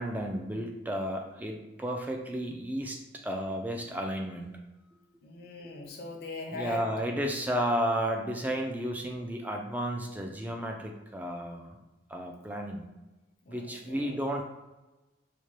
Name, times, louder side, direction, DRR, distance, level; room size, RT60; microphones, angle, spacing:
voice 1, 0.0-4.5 5.6-5.7 6.5-11.8 12.1-12.9 13.5-14.4, equal, 10° right, 2 dB, 0.3 m, -33 dB
voice 2, 5.2-6.9 12.5-12.6 13.4-14.2, left 1 dB, 55° left, 1 dB, 0.6 m, -41 dB
4.2 x 2.2 x 3.1 m, 1.1 s
head